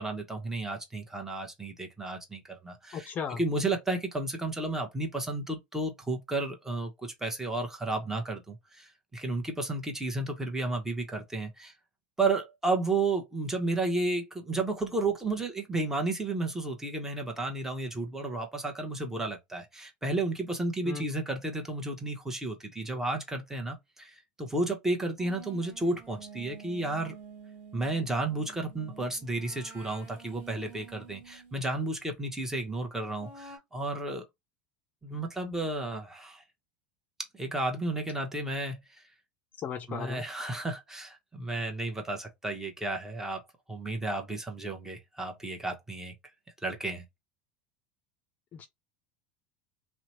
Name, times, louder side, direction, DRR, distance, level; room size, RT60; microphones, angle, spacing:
voice 1, 0.0-11.7 12.2-27.1 27.7-34.2 35.0-36.4 37.3-38.8 39.9-43.4 43.7-46.1 46.6-47.0, right 2 dB, 10° right, 1.0 m, -32 dB
voice 2, 2.9-3.4 20.8-21.1 39.6-40.2 48.5-48.7, left 7 dB, 35° left, 0.5 m, -36 dB
sound 1, 25.2-31.8 33.2-33.6, right 6 dB, 50° right, 1.3 m, -49 dB
2.7 x 2.2 x 2.9 m
hypercardioid pair, 80°, 5 cm